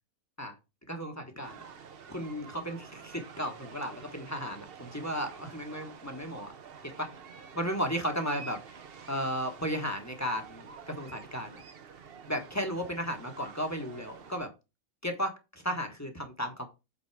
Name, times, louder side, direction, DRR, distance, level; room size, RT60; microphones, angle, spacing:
voice 1, 0.9-1.6 2.1-6.5 6.8-7.1 7.5-8.8 9.1-11.6 12.3-14.5 15.0-16.7, equal, 10° left, 4 dB, 1.2 m, -34 dB
sound 1, 1.4-14.4, right 6 dB, 50° right, 0.9 m, -49 dB
8.2 x 4.0 x 4.7 m, 0.27 s
omnidirectional pair, 1.5 m